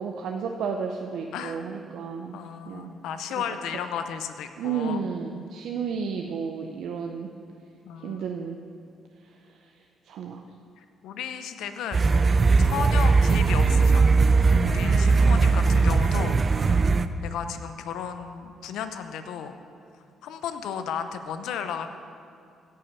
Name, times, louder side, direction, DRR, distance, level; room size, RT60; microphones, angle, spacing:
voice 1, 0.0-2.4 2.7-2.9 4.6-7.3 8.0-8.6 9.2-10.5 14.9-15.1 15.4-15.7, right 6 dB, 80° right, 3 dB, 0.6 m, -33 dB
voice 2, 1.3-1.6 2.3-5.0 7.9-8.3 10.5-10.6 11.0-12.1 12.6-14.0 14.6-16.8 17.2-19.6 20.2-21.9, left 7 dB, 85° left, 9 dB, 0.7 m, -34 dB
sound 1, 11.9-17.0, right 4 dB, 35° right, 0.4 m, -19 dB
16.5 x 5.6 x 5.5 m, 2.4 s
cardioid pair, 90°, 0 cm